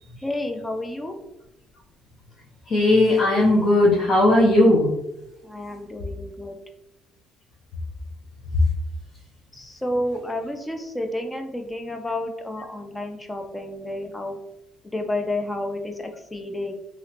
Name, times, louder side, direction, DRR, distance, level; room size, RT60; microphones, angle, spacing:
voice 1, 0.2-1.1 5.4-6.6 9.6-14.4 14.9-16.7, left 1 dB, 10° left, 5 dB, 0.4 m, -30 dB
voice 2, 2.6-4.9 8.5-8.7, left 1 dB, 45° left, -5 dB, 0.8 m, -17 dB
3.0 x 2.9 x 2.8 m, 0.87 s
cardioid pair, 140°, 0 cm